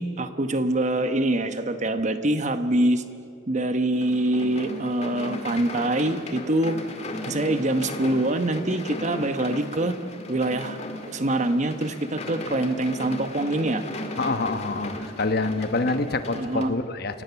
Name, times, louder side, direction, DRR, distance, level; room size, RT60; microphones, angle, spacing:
voice 1, 0.0-3.0 3.5-6.8 7.3-10.0 10.3-10.8 11.0-13.8 16.3-16.7, right 1 dB, 40° right, 9 dB, 1.1 m, -24 dB
sound 1, 3.9-16.7, left 1 dB, 35° left, 2.0 m, -36 dB
voice 2, 14.2-17.2, left 3 dB, 55° left, 9 dB, 1.1 m, -26 dB
29.0 x 17.0 x 7.0 m, 2.6 s
head